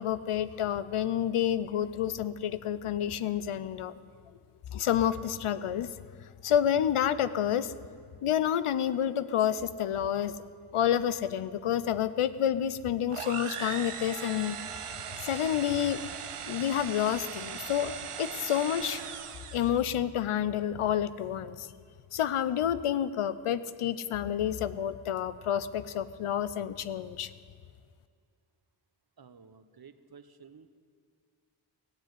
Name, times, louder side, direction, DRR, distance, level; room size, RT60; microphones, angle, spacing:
voice 1, 0.0-3.9 4.7-5.9 6.4-7.7 8.2-10.3 10.7-14.6 15.2-16.0 16.5-19.0 19.5-21.7 22.1-27.3, left 10 dB, 85° left, 15 dB, 0.7 m, -29 dB
sound 1, 13.1-19.8, right 8 dB, 80° right, 0.9 m, -39 dB
voice 2, 29.2-30.7, right 6 dB, 45° right, 11 dB, 0.9 m, -53 dB
16.5 x 7.5 x 9.1 m, 2.1 s
cardioid pair, 50°, 50 cm